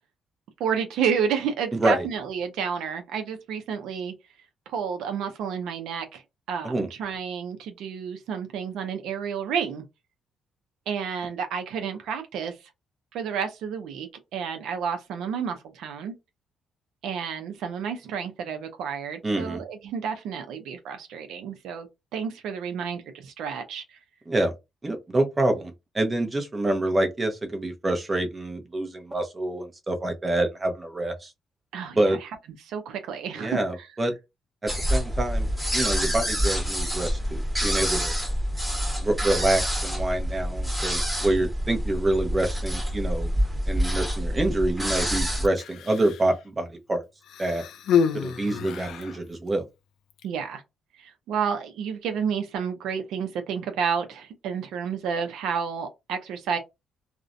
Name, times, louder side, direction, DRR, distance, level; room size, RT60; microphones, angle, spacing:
voice 1, 0.6-4.1 4.7-6.2 6.5-9.8 10.9-12.6 13.1-16.1 17.0-24.0 31.7-32.3 32.6-33.6 50.2-50.6 51.0-56.6, right 7 dB, 85° right, 0.4 m, -30 dB
voice 2, 1.7-2.0 6.6-6.9 19.2-19.6 24.3-24.5 24.8-31.3 31.9-32.2 33.4-34.1 34.6-35.5 35.7-38.1 39.0-43.3 43.7-47.0 47.4-47.7 48.1-49.6, right 1 dB, 25° right, 0.7 m, -26 dB
sound 1, 34.7-45.5, equal, 10° right, 1.1 m, -27 dB
Human voice, 45.5-46.3 47.2-49.2 50.1-50.3, left 7 dB, 80° left, 0.3 m, -28 dB
2.4 x 2.1 x 2.5 m
cardioid pair, 90°, 0 cm